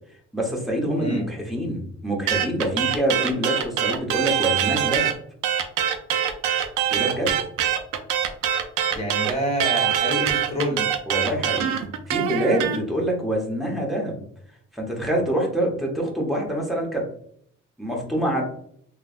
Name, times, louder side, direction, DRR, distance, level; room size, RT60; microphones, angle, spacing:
voice 1, 0.3-5.1 6.9-7.4 11.1-14.2 14.7-17.1 17.8-18.4, right 1 dB, ahead, -2 dB, 1.0 m, -26 dB
sound 1, 2.3-5.1 5.4-12.8, right 9 dB, 85° right, 0.5 m, -23 dB
voice 2, 8.9-10.9, equal, 20° left, -1 dB, 1.2 m, -27 dB
3.3 x 2.1 x 2.4 m, 0.64 s
cardioid pair, 90°, 30 cm